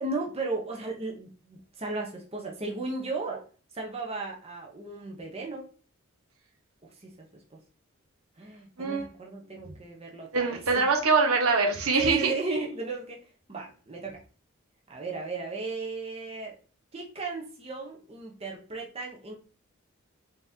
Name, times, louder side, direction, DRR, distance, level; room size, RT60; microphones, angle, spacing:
voice 1, 0.0-3.5 3.7-5.7 7.0-7.1 7.5-7.6 8.4-10.8 12.0-13.2 13.5-14.2 14.9-16.6 16.9-19.3, right 3 dB, 30° right, 0 dB, 0.8 m, -35 dB
voice 2, 10.3-12.3, right 4 dB, 75° right, 3 dB, 0.9 m, -24 dB
3.9 x 3.5 x 2.7 m, 0.38 s
head